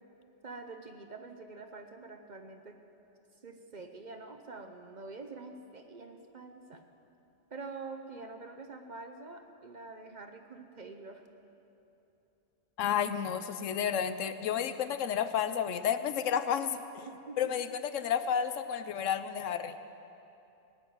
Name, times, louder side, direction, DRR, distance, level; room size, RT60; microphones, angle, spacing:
voice 1, 0.4-2.8 3.4-6.8 7.5-11.3 17.0-17.4, right 3 dB, 40° right, 6 dB, 0.8 m, -46 dB
voice 2, 12.8-17.0 17.4-19.8, left 8 dB, 80° left, 11 dB, 1.0 m, -31 dB
18.0 x 6.8 x 9.3 m, 2.9 s
omnidirectional pair, 1.3 m